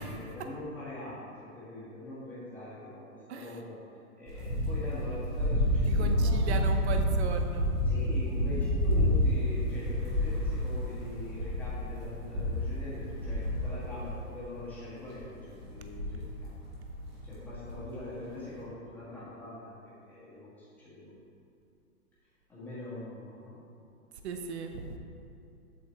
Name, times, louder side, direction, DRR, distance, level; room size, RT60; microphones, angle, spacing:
voice 1, 0.0-3.8 4.1-6.7 7.8-16.5 17.2-19.8 20.1-21.1 22.5-23.7, left 1 dB, 5° left, -11 dB, 1.7 m, -43 dB
sound 1, 4.3-14.7 15.1-15.3 15.6-17.8 18.6-18.7, left 1 dB, 20° right, 1.4 m, -29 dB
voice 2, 5.9-7.7 24.2-25.0, right 5 dB, 45° right, 5 dB, 0.7 m, -36 dB
8.1 x 7.0 x 3.2 m, 2.6 s
hypercardioid pair, 160°, 45 cm